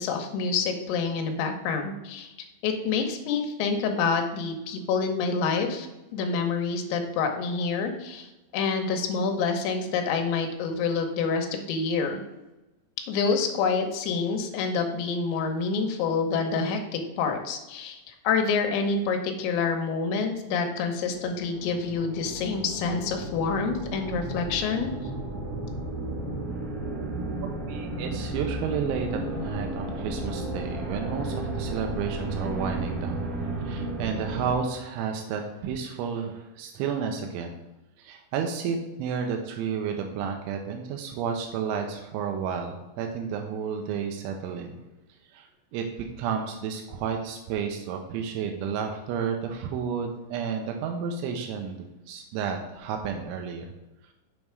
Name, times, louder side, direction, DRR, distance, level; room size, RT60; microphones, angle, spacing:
voice 1, 0.0-2.3 2.6-12.2 13.1-24.9, left 5 dB, 75° left, 4 dB, 3.1 m, -27 dB
sound 1, 21.0-34.5, right 2 dB, 60° right, 2.6 m, -33 dB
voice 2, 27.4-37.5 38.0-44.7 45.3-45.8 46.2-53.7, right 6 dB, 85° right, 4 dB, 3.1 m, -31 dB
7.5 x 5.4 x 4.6 m, 1.0 s
omnidirectional pair, 5.6 m